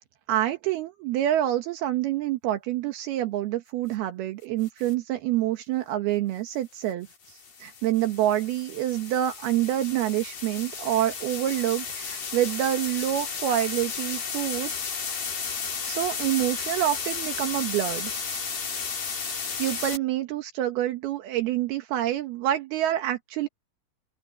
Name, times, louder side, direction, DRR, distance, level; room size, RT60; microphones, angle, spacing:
voice 1, 0.3-14.7 15.9-18.4 19.6-23.5, right 13 dB, 80° right, 3.1 m, -27 dB
sound 1, 4.6-4.9 7.1-20.0, left 5 dB, 60° left, 6.3 m, -33 dB
open air
omnidirectional pair, 4.5 m